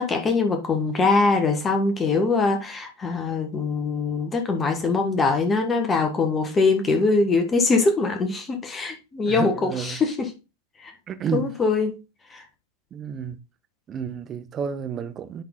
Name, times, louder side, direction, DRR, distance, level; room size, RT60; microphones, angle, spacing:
voice 1, 0.0-10.3 10.8-10.9 11.3-12.0 12.3-12.4, left 3 dB, 20° left, 1.3 m, -22 dB
voice 2, 9.3-10.0 11.1-11.5 12.9-13.4 13.9-15.4, right 7 dB, 25° right, 0.8 m, -30 dB
10.5 x 3.9 x 3.7 m
figure-of-eight pair, 90°, 0 cm